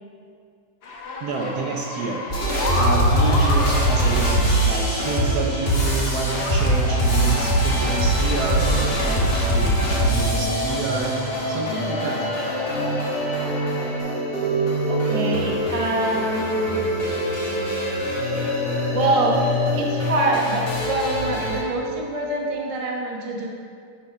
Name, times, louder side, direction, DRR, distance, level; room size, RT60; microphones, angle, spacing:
sound 1, 0.8-14.0, left 2 dB, 55° left, 1.5 m, -33 dB
voice 1, 1.2-2.3 2.7-9.8 10.1-12.3, right 4 dB, 65° right, 0 dB, 1.1 m, -29 dB
sound 2, 2.3-21.6, equal, 35° left, 1.4 m, -22 dB
voice 2, 14.9-16.7 18.9-23.5, right 2 dB, 35° right, -2 dB, 0.5 m, -25 dB
8.6 x 5.0 x 5.4 m, 2.3 s
omnidirectional pair, 2.2 m